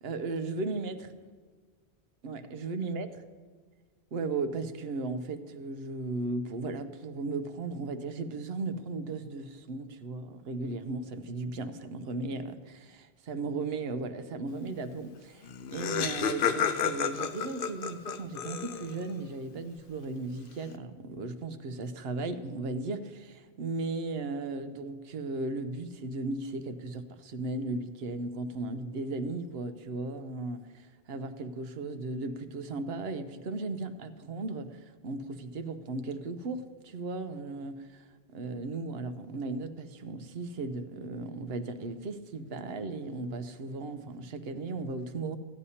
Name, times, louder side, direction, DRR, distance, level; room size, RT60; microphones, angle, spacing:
voice 1, 0.0-1.1 2.2-3.1 4.1-45.4, right 3 dB, 70° right, 9 dB, 0.9 m, -36 dB
Laughter, 15.2-15.3 15.4-19.1, left 7 dB, 60° left, 0.7 m, -31 dB
15.5 x 9.8 x 2.8 m, 1.5 s
omnidirectional pair, 1.1 m